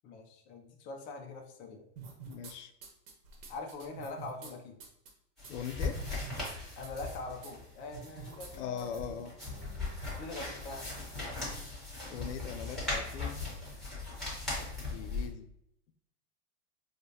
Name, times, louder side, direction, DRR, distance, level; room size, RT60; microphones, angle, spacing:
voice 1, 0.0-1.8 3.5-4.8 6.8-9.2 9.5-9.9 10.2-10.9, left 3 dB, 25° left, 2 dB, 0.3 m, -43 dB
sound 1, 2.0-2.5 2.8-4.5 4.8-5.1 5.4-5.5 5.8-6.5 6.8-7.1 7.4-7.5 7.9-8.5 8.8-8.9 9.4-9.5, right 5 dB, 55° right, 0.9 m, -47 dB
voice 2, 2.3-2.7 5.5-6.0 8.5-9.3 12.1-13.4 14.8-15.5, left 7 dB, 85° left, 8 dB, 0.5 m, -40 dB
sound 2, 5.4-15.3, left 3 dB, ahead, 1.3 m, -39 dB
4.8 x 2.1 x 2.7 m, 0.76 s
supercardioid pair, 145°, 35 cm